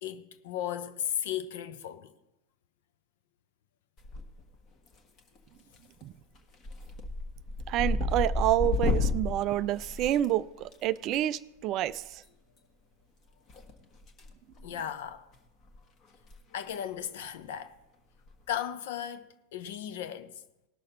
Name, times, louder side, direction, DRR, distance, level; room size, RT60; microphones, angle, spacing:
voice 1, 0.0-2.1 14.6-15.2 16.5-17.7 18.5-20.4, left 10 dB, 55° left, 0.7 m, -36 dB
sound 1, 4.0-4.5 4.9-5.4 5.7-6.0 6.3-10.8 12.1-12.3 13.5-14.3 14.6-14.8 15.3-15.4 15.7-15.8 16.1-16.3 16.6-16.7 18.3-18.5, left 2 dB, 30° left, 1.4 m, -32 dB
voice 2, 7.7-12.2, right 13 dB, 35° right, 0.3 m, -28 dB
19.0 x 6.5 x 4.2 m
figure-of-eight pair, 90°, 0 cm